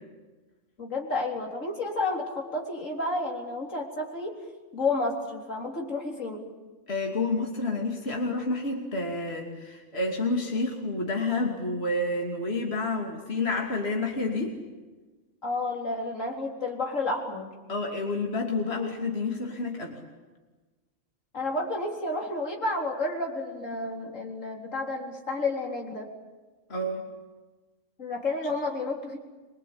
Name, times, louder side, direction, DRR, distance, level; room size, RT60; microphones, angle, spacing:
voice 1, 0.8-4.4 4.7-6.5 15.4-17.5 21.3-26.1 28.0-29.2, left 2 dB, 80° left, 0 dB, 4.3 m, -31 dB
voice 2, 6.9-14.6 17.7-20.0 26.7-27.1, left 2 dB, 55° left, 1 dB, 3.1 m, -29 dB
25.0 x 23.5 x 8.8 m, 1.3 s
omnidirectional pair, 1.3 m